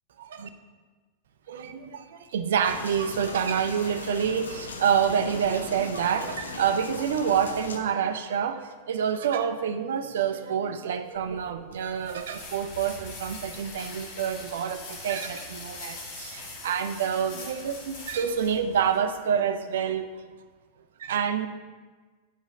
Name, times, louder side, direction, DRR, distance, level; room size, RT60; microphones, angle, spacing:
voice 1, 0.2-0.5 1.5-20.2 21.0-21.5, right 8 dB, 60° right, 9 dB, 0.5 m, -27 dB
sound 1, 2.6-7.8, left 4 dB, 70° left, 0.6 m, -39 dB
sound 2, 11.2-19.0, left 3 dB, 50° left, 1.6 m, -42 dB
9.1 x 5.0 x 3.8 m, 1.4 s
figure-of-eight pair, 90°, 0 cm